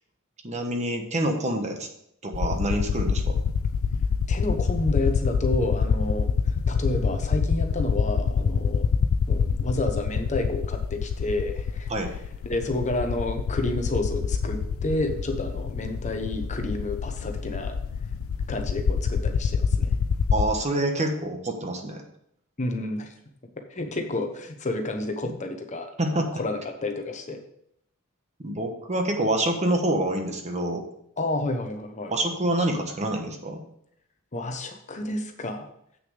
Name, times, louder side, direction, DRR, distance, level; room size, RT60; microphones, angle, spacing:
voice 1, 0.4-1.9 2.2-3.4 11.9-12.1 20.3-22.0 26.0-26.3 28.4-30.8 32.1-33.6, right 1 dB, 35° right, 4 dB, 1.2 m, -26 dB
sound 1, 2.3-20.4, left 6 dB, 75° left, 0.4 m, -26 dB
voice 2, 4.3-8.9 9.3-11.9 12.4-17.7 18.5-19.9 22.6-23.1 23.7-25.9 26.3-27.4 31.2-32.1 34.3-35.7, left 2 dB, 35° left, 5 dB, 1.0 m, -30 dB
7.9 x 6.5 x 5.0 m, 0.72 s
head